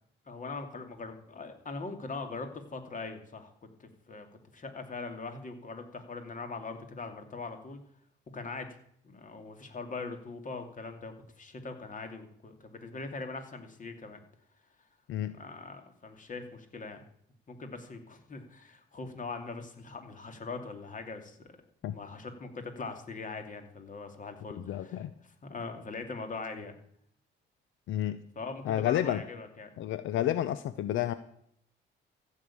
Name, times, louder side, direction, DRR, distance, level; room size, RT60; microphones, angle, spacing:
voice 1, 0.3-4.3 4.5-7.8 8.3-8.7 9.0-14.2 15.3-17.0 17.5-21.5 21.8-26.7 28.4-29.7, left 3 dB, 40° left, 6 dB, 2.7 m, -41 dB
voice 2, 24.6-25.1 27.9-28.2 28.6-29.2 29.8-31.1, left 12 dB, 80° left, 13 dB, 0.7 m, -30 dB
14.5 x 6.6 x 8.6 m, 0.68 s
cardioid pair, 90°, 20 cm